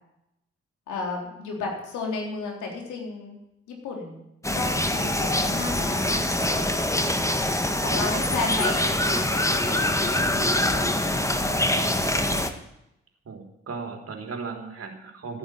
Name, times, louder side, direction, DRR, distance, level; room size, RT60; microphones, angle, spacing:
voice 1, 0.9-3.4 3.8-4.2 4.5-7.2 7.8-12.1, left 3 dB, 75° left, 1 dB, 3.7 m, -34 dB
sound 1, 4.4-12.5, left 1 dB, 10° left, 1.8 m, -24 dB
voice 2, 13.3-15.4, right 4 dB, 50° right, 2 dB, 3.7 m, -36 dB
14.0 x 9.3 x 8.5 m, 0.86 s
hypercardioid pair, 40°, 30 cm